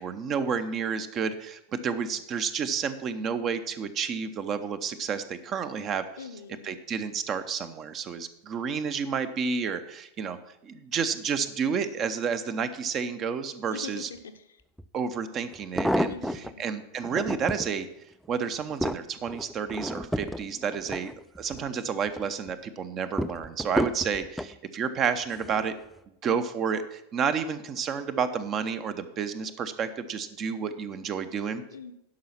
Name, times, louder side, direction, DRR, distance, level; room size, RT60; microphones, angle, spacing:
voice 1, 0.0-6.1 6.6-10.4 10.6-14.1 14.9-17.9 18.3-21.1 21.4-25.7 26.2-31.6, right 6 dB, 30° right, 11 dB, 0.7 m, -30 dB
voice 2, 6.2-6.8 13.7-14.6 16.1-16.6 31.7-31.9, left 5 dB, 65° left, 7 dB, 0.7 m, -43 dB
sound 1, 14.8-14.9 15.5-16.5 17.0-17.7 18.2-21.7 22.1-22.5 23.2-24.5 25.3-25.7 26.0-26.1, equal, ahead, 0.3 m, -31 dB
11.5 x 5.5 x 5.8 m, 0.83 s
figure-of-eight pair, 90°, 0 cm